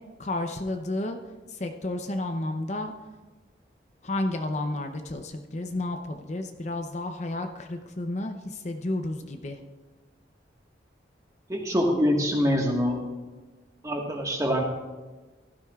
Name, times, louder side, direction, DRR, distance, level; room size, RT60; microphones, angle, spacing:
voice 1, 0.2-1.2 1.5-2.9 4.0-9.6, left 2 dB, 40° left, 5 dB, 0.7 m, -31 dB
voice 2, 11.5-13.0 13.8-14.6, equal, 20° right, 0 dB, 1.5 m, -24 dB
16.0 x 12.5 x 2.4 m, 1.3 s
head